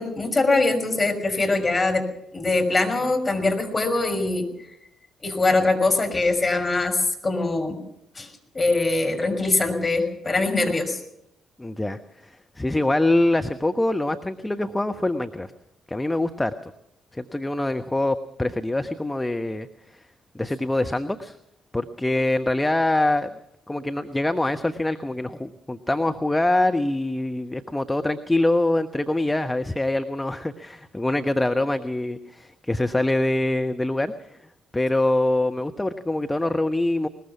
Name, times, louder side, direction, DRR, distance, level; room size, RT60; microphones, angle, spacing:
voice 1, 0.0-2.0 2.3-4.4 5.2-7.8 8.2-8.3 8.5-11.0, left 2 dB, 30° left, 2 dB, 6.0 m, -22 dB
voice 2, 11.6-15.5 15.9-16.7 17.1-20.1 20.3-21.4 21.7-23.3 23.7-34.4 34.7-37.1, left 1 dB, 15° left, 7 dB, 1.1 m, -24 dB
21.5 x 20.5 x 5.9 m, 0.78 s
figure-of-eight pair, 40°, 0 cm